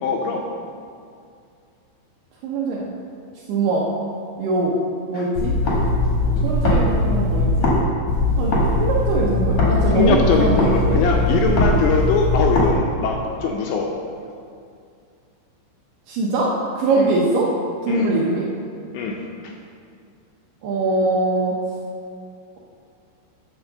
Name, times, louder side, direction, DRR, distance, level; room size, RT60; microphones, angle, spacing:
voice 1, 0.0-0.4 5.1-5.3 9.9-13.9 16.9-17.1 17.9-18.2 18.9-19.5, left 5 dB, 80° left, 1 dB, 2.7 m, -22 dB
voice 2, 2.4-2.9 3.5-3.9 4.4-4.7 5.1-5.5 6.4-7.7 8.4-11.0 16.1-17.5 17.8-18.5 20.6-21.5, right 2 dB, 75° right, -4 dB, 2.4 m, -22 dB
sound 1, 5.3-7.8 8.1-12.7, left 1 dB, 60° left, 1.8 m, -20 dB
9.5 x 5.0 x 6.6 m, 2.4 s
omnidirectional pair, 5.6 m